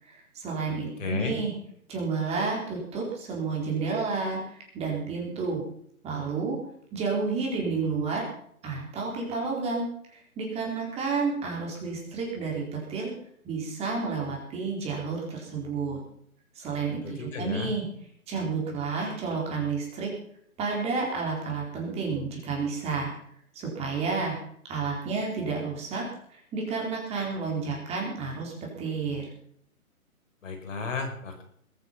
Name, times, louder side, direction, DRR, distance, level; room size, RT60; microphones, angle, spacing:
voice 1, 0.0-1.5 1.9-5.6 6.0-6.6 6.9-8.3 8.6-13.1 13.4-16.0 16.5-17.8 18.3-20.1 20.6-23.1 23.5-24.4 24.7-26.0 26.3-29.2, right 4 dB, 15° right, -2 dB, 4.2 m, -31 dB
voice 2, 0.7-1.4 17.0-17.7 30.4-31.4, left 4 dB, 60° left, 4 dB, 5.2 m, -33 dB
21.5 x 9.6 x 5.8 m, 0.67 s
hypercardioid pair, 150°, 43 cm